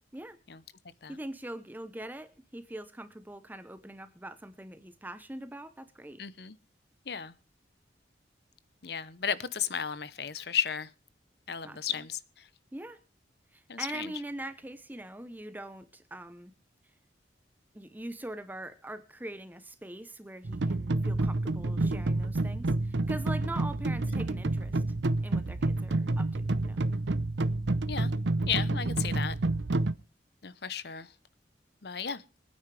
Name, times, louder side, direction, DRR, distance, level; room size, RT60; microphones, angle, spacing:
voice 1, 1.1-6.2 11.6-11.8 12.7-13.0 13.5-16.5 17.7-24.8 25.2-26.8, right 1 dB, 10° right, 0.8 m, -42 dB
voice 2, 6.2-6.5 7.1-7.4 8.8-10.9 11.5-12.5 13.7-14.1 24.3-24.4 27.9-28.1 28.5-29.3 30.4-31.1 31.8-32.2, left 8 dB, 60° left, 0.9 m, -34 dB
sound 1, 20.4-29.9, right 2 dB, 80° right, 0.7 m, -29 dB
24.5 x 9.6 x 3.3 m
head